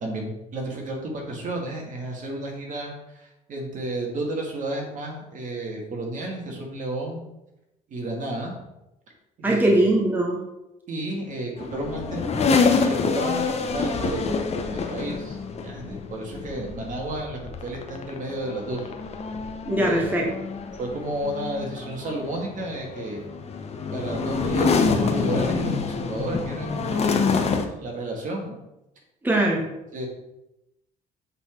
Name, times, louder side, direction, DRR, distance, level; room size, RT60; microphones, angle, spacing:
voice 1, 0.0-7.3 7.9-8.6 9.4-9.9 10.9-18.9 19.8-20.3 20.8-23.2 23.9-28.5 29.9-30.1, right 1 dB, 50° right, 0 dB, 1.9 m, -32 dB
voice 2, 9.4-10.4 19.6-20.3 29.2-29.6, right 1 dB, 10° right, -1 dB, 1.1 m, -21 dB
sound 1, 11.6-27.6, left 4 dB, 40° left, 0.9 m, -27 dB
8.0 x 4.0 x 4.5 m, 0.91 s
cardioid pair, 110°, 17 cm